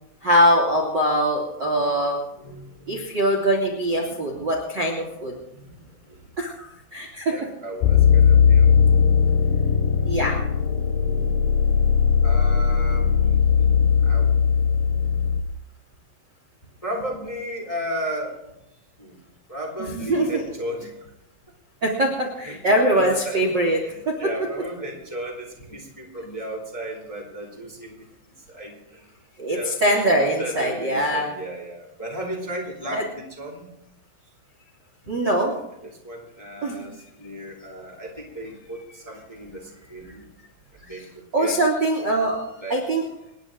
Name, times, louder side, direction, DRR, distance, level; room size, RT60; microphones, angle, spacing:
voice 1, 0.2-2.2 2.9-5.3 6.4-7.4 10.0-10.3 19.8-20.4 21.8-23.8 29.4-31.3 32.9-33.0 35.1-35.5 36.6-36.8 41.3-42.4 42.7-43.0, right 1 dB, 30° right, -1 dB, 2.4 m, -22 dB
voice 2, 2.2-3.0 3.9-4.4 5.5-6.3 7.3-9.0 12.2-14.3 16.8-18.4 19.0-19.2 19.5-20.9 22.4-28.1 28.5-29.1 29.5-29.8 30.1-33.7 35.8-40.2 40.7-41.0 41.4-41.6 42.6-42.8, equal, 10° left, -1 dB, 3.0 m, -35 dB
sound 1, 7.8-15.4, left 6 dB, 70° left, 2.3 m, -18 dB
29.0 x 10.5 x 3.8 m, 0.84 s
omnidirectional pair, 5.2 m